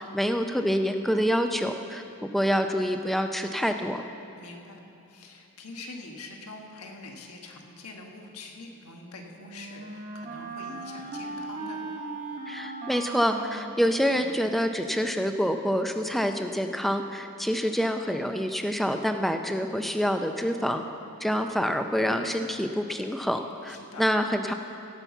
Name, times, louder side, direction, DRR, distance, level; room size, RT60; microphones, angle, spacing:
voice 1, 0.0-2.0 2.3-4.0 12.5-20.8 21.2-24.5, equal, ahead, 6 dB, 0.4 m, -27 dB
voice 2, 4.4-4.8 5.1-11.9 23.7-24.1, left 3 dB, 90° left, 2 dB, 1.3 m, -44 dB
Wind instrument woodwind instrument, 8.9-14.7, right 3 dB, 35° right, 1.1 m, -39 dB
16.5 x 5.8 x 7.1 m, 2.8 s
head